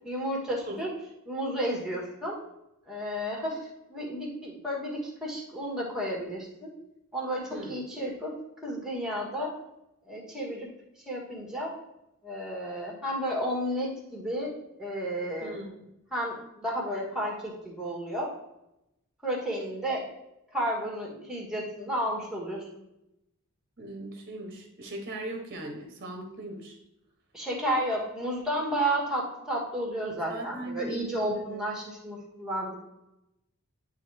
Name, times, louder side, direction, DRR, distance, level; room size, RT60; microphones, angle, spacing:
voice 1, 0.0-0.9 1.2-2.4 2.9-6.7 7.1-8.3 8.6-9.5 10.1-10.7 11.0-11.7 12.2-15.6 16.1-18.3 19.2-20.1 20.5-22.7 27.3-32.8, equal, 5° right, -2 dB, 1.5 m, -32 dB
voice 2, 23.8-26.8 30.3-31.6, right 1 dB, 45° right, 2 dB, 1.0 m, -38 dB
10.0 x 3.5 x 3.3 m, 0.88 s
head